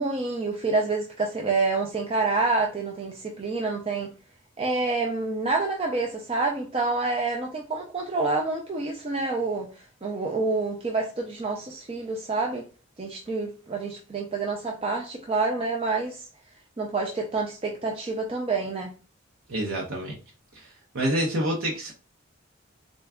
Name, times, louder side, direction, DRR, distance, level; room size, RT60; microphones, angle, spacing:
voice 1, 0.0-4.1 4.6-9.7 10.0-12.6 13.0-16.2 16.8-18.9, right 3 dB, 30° right, 0.4 m, -27 dB
voice 2, 19.5-20.2 20.5-21.9, right 1 dB, 85° right, 0.8 m, -28 dB
3.8 x 2.3 x 3.5 m
head